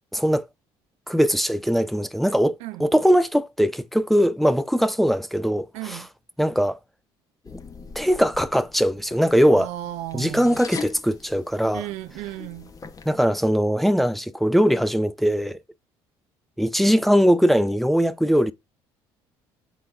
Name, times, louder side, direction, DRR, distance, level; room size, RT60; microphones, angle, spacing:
voice 1, 0.1-0.5 1.1-6.0 6.4-6.8 8.0-9.7 10.1-11.8 13.1-15.6 16.6-18.5, equal, ahead, 0.5 m, -21 dB
voice 2, 5.7-6.1 9.5-10.6 11.7-12.7, right 15 dB, 75° right, 0.5 m, -34 dB
sound 1, 7.4-13.1, left 5 dB, 30° left, 0.8 m, -42 dB
7.5 x 4.0 x 3.5 m
supercardioid pair, 75°, 11 cm